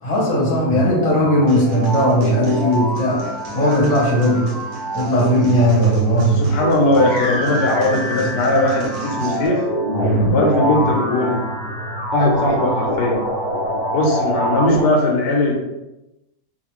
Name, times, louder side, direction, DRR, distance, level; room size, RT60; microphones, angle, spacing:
voice 1, 0.0-3.2 3.5-4.5 4.9-6.4, equal, 30° left, -5 dB, 1.0 m, -17 dB
sound 1, 0.7-14.8, right 1 dB, 5° right, 0.9 m, -24 dB
sound 2, 1.5-9.5, right 2 dB, 65° right, 1.1 m, -34 dB
voice 2, 6.3-9.7 10.3-11.4 12.1-13.2 13.9-15.5, left 2 dB, 85° left, 0 dB, 1.3 m, -19 dB
3.2 x 2.7 x 3.0 m, 0.94 s
omnidirectional pair, 1.8 m